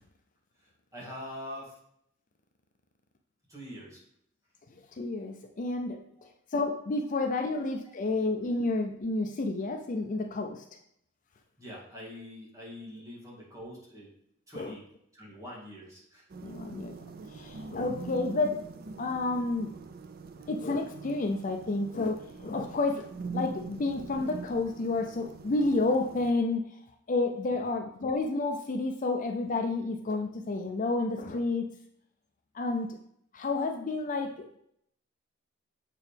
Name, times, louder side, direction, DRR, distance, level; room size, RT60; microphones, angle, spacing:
voice 1, 0.9-1.8 3.5-4.0 6.1-6.3 7.0-7.1 8.5-8.6 11.6-14.1 14.5-14.8 15.1-16.3 27.5-27.6, equal, 15° right, -4 dB, 1.9 m, -44 dB
voice 2, 4.9-6.0 6.5-10.6 14.5-14.7 16.4-16.9 17.3-18.6 19.0-19.7 20.5-23.1 23.3-26.8 27.1-31.7 32.5-33.0 33.3-34.6, left 3 dB, 40° left, 4 dB, 0.4 m, -30 dB
sound 1, 16.3-26.3, right 4 dB, 50° right, 0.5 m, -43 dB
6.8 x 4.6 x 3.4 m, 0.72 s
head